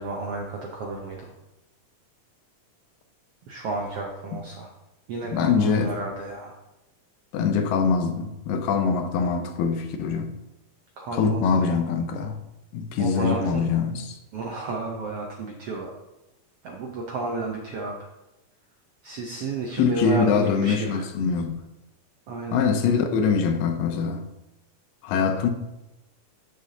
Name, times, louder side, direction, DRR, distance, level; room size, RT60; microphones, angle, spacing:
voice 1, 0.0-1.3 3.5-4.7 5.1-6.6 11.0-11.8 13.0-13.7 14.3-15.9 16.6-18.1 19.0-21.1 22.3-22.7, right 3 dB, 75° right, 1.3 m, -32 dB
voice 2, 5.3-5.9 7.3-10.3 11.1-12.4 12.7-14.1 19.8-21.6 22.5-24.2 25.0-25.5, left 5 dB, 85° left, 2.5 m, -23 dB
12.5 x 6.5 x 2.8 m
omnidirectional pair, 3.8 m